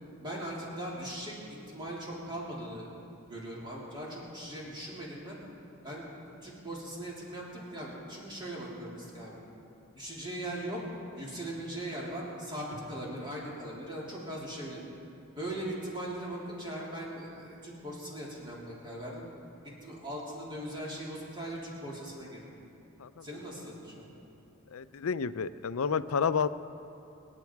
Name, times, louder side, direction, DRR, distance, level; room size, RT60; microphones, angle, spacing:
voice 1, 0.2-1.3 1.7-2.9 3.3-5.4 5.8-6.1 6.4-9.4 9.9-10.8 11.2-14.8 15.3-19.3 19.8-22.4 23.2-24.1, right 1 dB, 20° right, -5 dB, 3.3 m, -39 dB
voice 2, 24.7-26.5, left 6 dB, 80° left, 13 dB, 0.5 m, -30 dB
25.5 x 10.5 x 4.7 m, 2.9 s
head